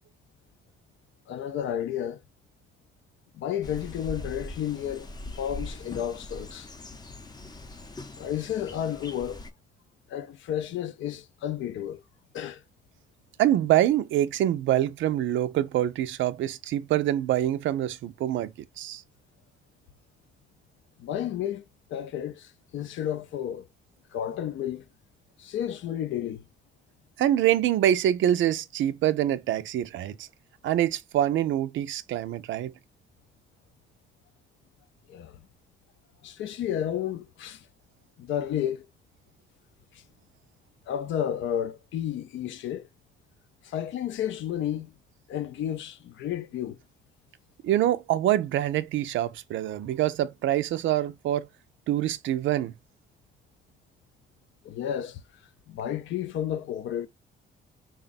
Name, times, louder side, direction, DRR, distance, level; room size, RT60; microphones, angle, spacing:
voice 1, 1.3-2.2 3.3-5.1 5.4-6.7 8.2-9.4 10.1-12.0 12.3-12.6 21.0-21.6 21.9-23.7 24.1-24.8 25.4-26.4 35.1-35.4 36.2-37.7 38.2-38.9 39.9-40.0 40.9-42.9 43.6-44.9 45.3-46.8 54.6-55.2 55.7-57.1, left 10 dB, 75° left, 0.5 m, -32 dB
sound 1, 3.6-9.5, left 2 dB, 20° left, 0.6 m, -41 dB
voice 2, 13.4-19.0 27.2-30.3 30.6-32.7 47.6-51.5 51.9-52.7, right 12 dB, 75° right, 0.4 m, -25 dB
3.6 x 2.3 x 3.9 m
cardioid pair, 90°, 20 cm